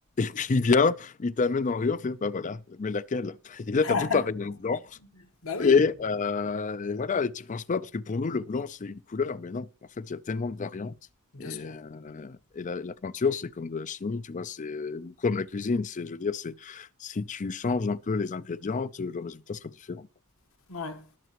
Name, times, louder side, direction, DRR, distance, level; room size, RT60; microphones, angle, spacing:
voice 1, 0.2-3.9 4.1-5.0 5.6-9.7 10.0-10.9 11.4-20.1, left 4 dB, 35° left, 0.5 m, -29 dB
voice 2, 3.8-4.3 5.0-5.8 11.3-11.8 20.7-21.1, left 4 dB, 80° left, 1.3 m, -33 dB
20.0 x 6.8 x 3.0 m
head